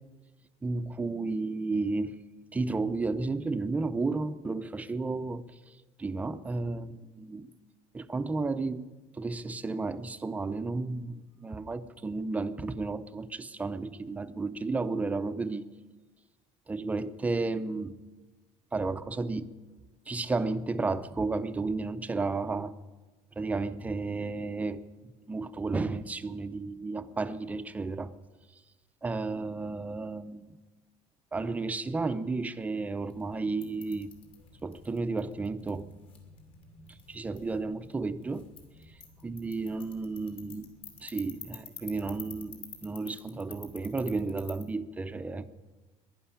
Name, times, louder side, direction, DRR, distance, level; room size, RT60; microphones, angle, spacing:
voice 1, 0.6-2.2 2.5-5.5 6.0-7.5 7.9-8.8 9.1-15.6 16.7-17.9 18.7-19.5 20.1-22.7 23.4-24.8 25.3-28.1 29.0-30.6 31.3-34.1 34.6-35.9 37.1-38.5 39.2-40.7 41.0-45.5, right 3 dB, 10° right, 0.5 m, -32 dB
sound 1, 32.9-44.6, left 6 dB, 50° left, 2.6 m, -50 dB
11.0 x 11.0 x 9.9 m
cardioid pair, 170°, 12 cm